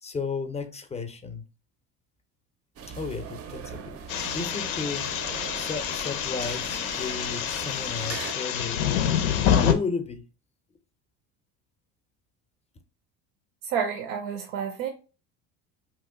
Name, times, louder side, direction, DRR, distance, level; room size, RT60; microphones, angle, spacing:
voice 1, 0.0-1.4 3.0-4.0 4.3-5.1 5.5-8.8 9.6-10.2, left 4 dB, 15° left, 0.4 m, -33 dB
sound 1, 2.8-8.3, right 6 dB, 35° right, 0.4 m, -40 dB
sound 2, 4.1-9.7, left 9 dB, 90° left, 0.5 m, -27 dB
voice 2, 13.6-14.9, right 7 dB, 85° right, 0.6 m, -29 dB
2.9 x 2.1 x 3.5 m
supercardioid pair, 90°, 40 cm